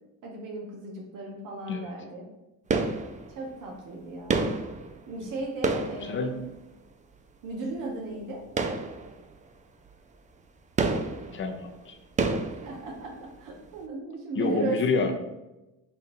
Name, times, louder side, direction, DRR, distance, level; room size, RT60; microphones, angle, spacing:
voice 1, 0.2-2.3 3.3-4.6 5.1-6.3 7.4-8.5 12.5-15.1, right 2 dB, 75° right, 0 dB, 0.9 m, -36 dB
sound 1, 2.7-3.6 4.3-6.9 8.5-9.5 9.9-10.0 10.8-13.4 13.6-13.7, right 3 dB, 25° right, 0.4 m, -30 dB
voice 2, 11.3-12.0 14.4-15.1, left 4 dB, 40° left, 4 dB, 0.7 m, -28 dB
3.9 x 2.5 x 4.2 m, 1.0 s
cardioid pair, 90°, 32 cm